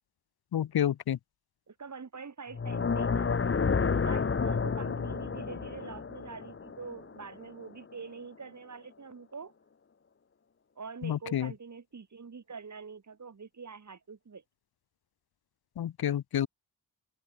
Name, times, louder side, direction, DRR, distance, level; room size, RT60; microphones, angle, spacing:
voice 1, 0.5-1.2 11.0-11.5 15.8-16.5, left 10 dB, 75° left, 0.8 m, -29 dB
voice 2, 1.7-3.5 4.0-9.5 10.8-14.4, right 5 dB, 45° right, 6.3 m, -45 dB
sound 1, 2.5-7.6, left 5 dB, 35° left, 1.2 m, -30 dB
open air
wide cardioid pair, 140°, 38 cm